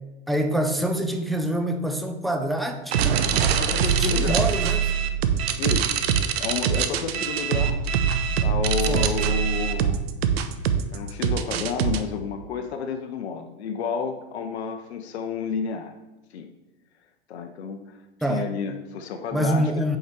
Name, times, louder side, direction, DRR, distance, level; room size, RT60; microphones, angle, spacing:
voice 1, 0.3-3.2 3.9-4.9 8.9-9.1 18.2-18.5 19.3-20.0, right 1 dB, ahead, 4 dB, 0.4 m, -26 dB
sound 1, 2.9-12.0, right 7 dB, 70° right, 0.7 m, -23 dB
voice 2, 3.5-4.5 5.6-6.0 6.4-7.8 8.4-10.0 10.9-15.9 16.3-16.5 17.3-18.0 18.3-19.7, left 6 dB, 75° left, 6 dB, 0.7 m, -30 dB
5.4 x 4.9 x 4.6 m, 1.1 s
hypercardioid pair, 105°, 33 cm